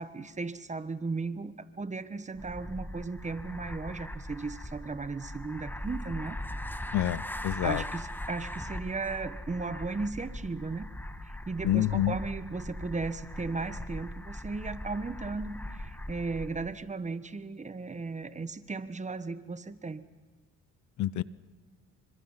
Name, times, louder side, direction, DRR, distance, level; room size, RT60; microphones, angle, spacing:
voice 1, 0.0-6.4 7.6-10.9 11.2-20.0, right 3 dB, 25° right, 12 dB, 1.3 m, -36 dB
sound 1, 2.4-16.8, left 1 dB, 5° left, 1.4 m, -40 dB
voice 2, 6.9-7.8 11.6-12.1 21.0-21.2, left 13 dB, 70° left, 19 dB, 0.7 m, -27 dB
28.5 x 25.5 x 5.8 m, 1.3 s
cardioid pair, 90°, 30 cm